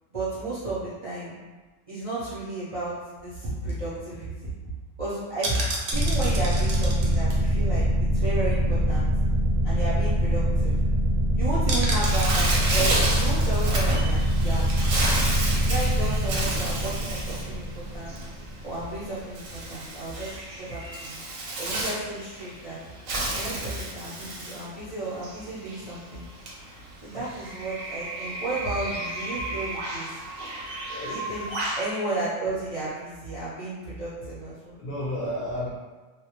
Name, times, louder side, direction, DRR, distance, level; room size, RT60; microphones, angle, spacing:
voice 1, 0.1-1.3 1.9-2.9 3.2-4.5 5.0-5.6 5.9-9.1 9.6-10.8 11.4-15.0 15.6-18.1 18.6-21.2 21.6-22.8 23.3-26.2 27.0-30.1 31.1-31.5 31.8-34.7, right 2 dB, 40° right, -12 dB, 0.5 m, -33 dB
sound 1, 3.2-8.6 8.9-9.0 9.3-9.5 9.9-10.0 10.3-10.6 11.7-13.4 13.8-13.9, right 2 dB, 65° right, 0.8 m, -34 dB
sound 2, 5.9-19.2, equal, ahead, 0.7 m, -24 dB
Bird, 12.0-31.9, right 2 dB, 85° right, 1.0 m, -32 dB
voice 2, 30.9-31.2 34.8-35.7, left 1 dB, 60° left, -7 dB, 0.6 m, -32 dB
2.2 x 2.1 x 2.9 m, 1.2 s
omnidirectional pair, 1.4 m